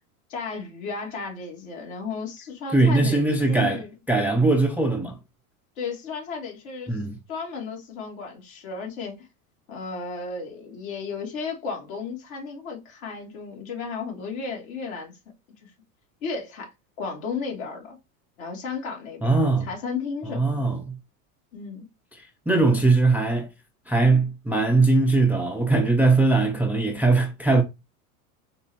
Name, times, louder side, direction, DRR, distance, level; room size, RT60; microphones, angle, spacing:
voice 1, 0.3-3.2 3.5-3.9 5.8-7.0 7.3-9.3 9.7-15.1 15.6-15.7 16.2-16.7 17.0-18.0 18.4-20.6 21.5-21.9, left 5 dB, 70° left, 2.6 m, -34 dB
voice 2, 2.7-3.8 4.1-5.2 6.9-7.2 19.2-19.7 20.3-20.9 22.5-23.5 23.9-27.6, right 3 dB, 5° right, 0.4 m, -20 dB
4.3 x 3.4 x 2.7 m
hypercardioid pair, 110°, 43 cm